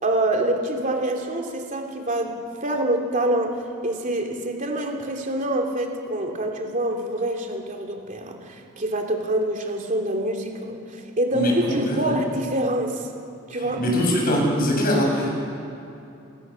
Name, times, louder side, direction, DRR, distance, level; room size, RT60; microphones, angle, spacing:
voice 1, 0.0-13.1 13.5-13.8, right 1 dB, 40° right, 2 dB, 2.9 m, -26 dB
voice 2, 11.3-12.1 13.8-15.3, equal, 45° left, -1 dB, 6.8 m, -22 dB
29.5 x 17.0 x 7.1 m, 2.7 s
head